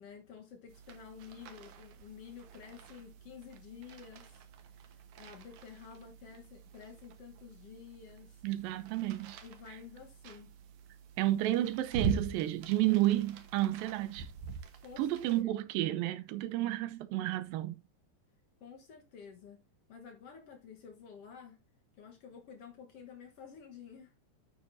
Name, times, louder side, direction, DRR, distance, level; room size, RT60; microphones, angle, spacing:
voice 1, 0.0-4.4 4.7-8.4 9.4-10.5 14.8-15.5 18.6-19.6 19.9-21.6 22.0-24.1, left 7 dB, 80° left, 1.3 m, -51 dB
sound 1, 0.7-15.4, right 5 dB, 65° right, 2.1 m, -44 dB
voice 2, 8.4-9.4 11.2-14.3 15.0-17.8, right 15 dB, 85° right, 2.0 m, -31 dB
10.0 x 9.5 x 2.7 m
omnidirectional pair, 4.8 m